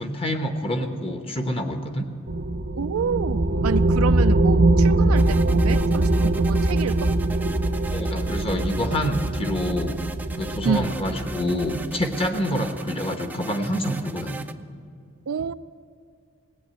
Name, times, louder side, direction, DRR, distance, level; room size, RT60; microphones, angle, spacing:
voice 1, 0.0-2.1 7.9-9.9 10.3-14.4, equal, 25° left, 5 dB, 1.1 m, -27 dB
sound 1, 2.3-12.3, right 2 dB, 50° right, 0.7 m, -22 dB
voice 2, 2.8-7.2 10.6-11.0 12.5-12.6 15.3-15.5, right 6 dB, 85° right, 13 dB, 0.4 m, -28 dB
sound 2, 5.2-14.5, right 3 dB, 10° right, 0.4 m, -39 dB
17.5 x 8.9 x 9.0 m, 2.3 s
head